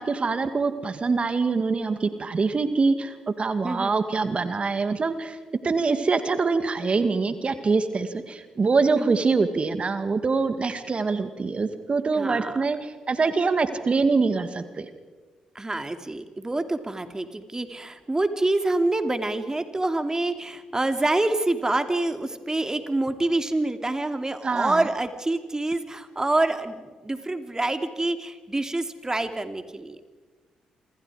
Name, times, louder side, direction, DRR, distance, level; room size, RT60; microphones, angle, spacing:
voice 1, 0.0-5.4 5.6-14.9 24.4-24.8, right 4 dB, 40° right, 10 dB, 1.9 m, -24 dB
voice 2, 3.6-4.0 9.0-9.2 12.1-12.6 15.5-30.0, right 2 dB, 20° right, 8 dB, 2.7 m, -26 dB
28.0 x 26.5 x 5.0 m, 1.3 s
hypercardioid pair, 40°, 3 cm